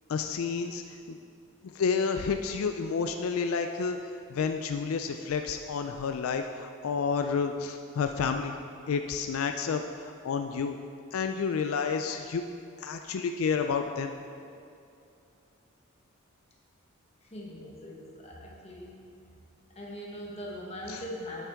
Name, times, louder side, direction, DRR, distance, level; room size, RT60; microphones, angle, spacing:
voice 1, 0.1-0.8 1.1-1.2 1.7-4.0 4.3-8.5 8.9-10.8 11.1-12.4 12.8-14.2 20.9-21.0, left 5 dB, 80° left, 6 dB, 0.4 m, -30 dB
voice 2, 17.2-19.1 19.7-21.5, left 1 dB, 30° left, -3 dB, 1.2 m, -41 dB
8.8 x 7.2 x 3.5 m, 2.6 s
head